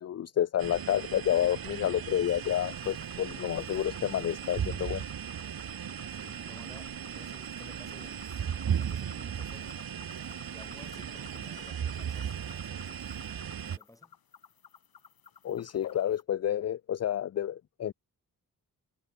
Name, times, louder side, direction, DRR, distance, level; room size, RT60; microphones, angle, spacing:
voice 1, 0.0-5.0 15.4-17.9, left 10 dB, 45° left, 0.5 m, -30 dB
sound 1, 0.6-13.8, right 8 dB, 80° right, 2.6 m, -37 dB
sound 2, 2.2-16.2, left 8 dB, 80° left, 3.6 m, -57 dB
voice 2, 6.1-8.5 8.8-9.7 10.5-13.1 13.6-14.2, left 1 dB, 10° left, 6.7 m, -55 dB
wide cardioid pair, 130°, 35 cm